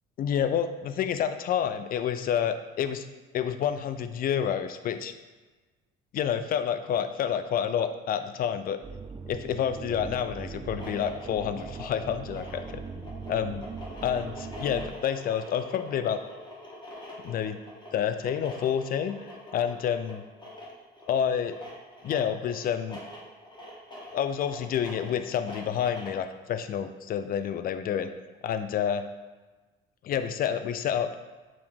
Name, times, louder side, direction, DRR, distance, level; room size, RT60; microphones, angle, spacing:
voice 1, 0.2-3.1 3.3-5.1 6.1-8.8 9.3-13.6 14.0-16.2 17.2-17.6 17.9-19.2 19.5-20.2 21.1-21.5 22.0-23.0 24.1-28.1 28.4-29.0 30.0-31.1, left 8 dB, 45° left, 10 dB, 0.4 m, -29 dB
sound 1, 8.8-14.9, right 5 dB, 25° right, 0.3 m, -40 dB
sound 2, 10.6-26.3, left 1 dB, 25° left, 1.4 m, -45 dB
4.9 x 2.9 x 3.6 m, 1.3 s
cardioid pair, 95°, 20 cm